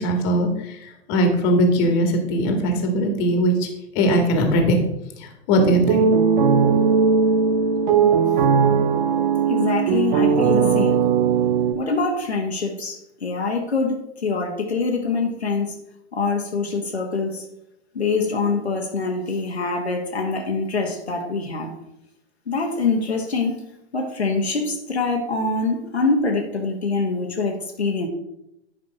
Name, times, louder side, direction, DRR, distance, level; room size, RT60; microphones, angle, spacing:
voice 1, 0.0-3.7 4.0-4.8 5.2-6.1, equal, 35° left, 3 dB, 1.9 m, -20 dB
sound 1, 5.6-11.7, right 6 dB, 45° right, 1.0 m, -18 dB
voice 2, 9.5-11.0 11.7-15.7 16.1-17.4 17.9-21.8 22.5-23.6 23.9-28.1, left 3 dB, 75° left, 1 dB, 1.4 m, -24 dB
9.9 x 5.1 x 4.8 m, 0.83 s
figure-of-eight pair, 105°, 32 cm